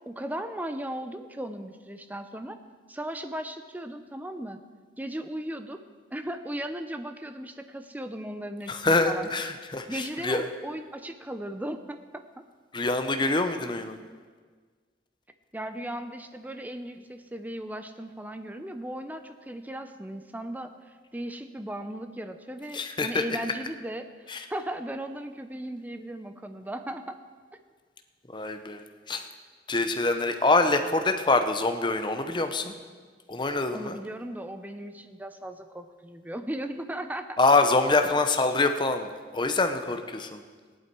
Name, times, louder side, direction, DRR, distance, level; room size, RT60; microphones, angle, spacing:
voice 1, 0.1-2.6 2.9-4.6 5.0-5.8 6.1-9.3 9.9-12.2 15.5-20.7 21.1-24.1 24.5-27.2 33.7-37.4, right 1 dB, 10° right, 8 dB, 0.7 m, -36 dB
voice 2, 8.7-10.4 12.7-14.0 22.7-23.2 24.3-24.4 28.3-29.3 29.7-32.7 33.3-34.0 37.4-39.1 39.3-40.4, left 3 dB, 25° left, 7 dB, 0.8 m, -25 dB
16.5 x 11.0 x 4.7 m, 1.6 s
head